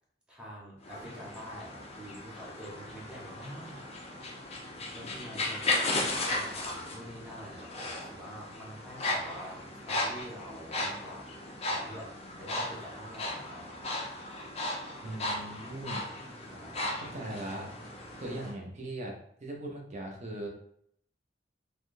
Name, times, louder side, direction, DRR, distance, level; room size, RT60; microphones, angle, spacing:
voice 1, 0.3-3.9 4.9-11.4 11.7-13.8 16.4-17.1, equal, 5° right, -4 dB, 0.8 m, -46 dB
sound 1, 0.8-18.5, left 2 dB, 35° left, 0.6 m, -36 dB
voice 2, 15.0-16.0 17.1-17.7 18.2-19.1 19.4-20.5, right 1 dB, 40° right, 0 dB, 0.7 m, -39 dB
3.4 x 2.3 x 2.6 m, 0.67 s
head